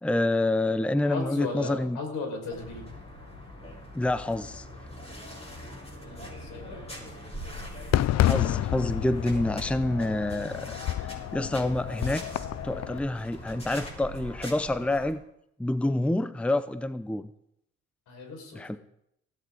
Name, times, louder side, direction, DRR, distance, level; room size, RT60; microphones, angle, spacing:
voice 1, 0.0-2.0 3.9-4.7 8.2-10.7 11.0-12.2 12.6-15.2 15.6-17.3 18.5-18.8, left 1 dB, 5° left, 12 dB, 0.7 m, -27 dB
voice 2, 1.0-2.9 6.0-6.9 18.1-18.8, left 3 dB, 85° left, 2 dB, 5.3 m, -37 dB
sound 1, 2.5-15.1, equal, 20° left, 7.1 m, -42 dB
Fireworks, 7.9-13.0, left 14 dB, 60° left, 0.5 m, -29 dB
19.0 x 15.5 x 3.9 m, 0.76 s
cardioid pair, 90°, 30 cm